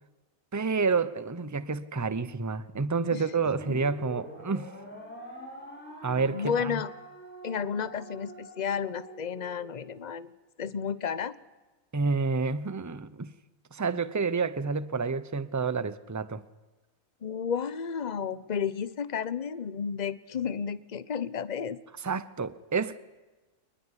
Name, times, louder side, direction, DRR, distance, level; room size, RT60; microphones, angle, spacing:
voice 1, 0.5-4.7 6.0-6.8 11.9-13.3 13.7-16.4 22.0-23.1, right 4 dB, 15° right, 0.6 m, -29 dB
sound 1, 3.4-10.0, right 1 dB, 5° left, 7.5 m, -45 dB
voice 2, 6.1-6.9 7.4-10.3 10.6-11.4 17.2-21.8, left 7 dB, 35° left, 0.9 m, -32 dB
26.5 x 20.5 x 10.0 m
omnidirectional pair, 1.6 m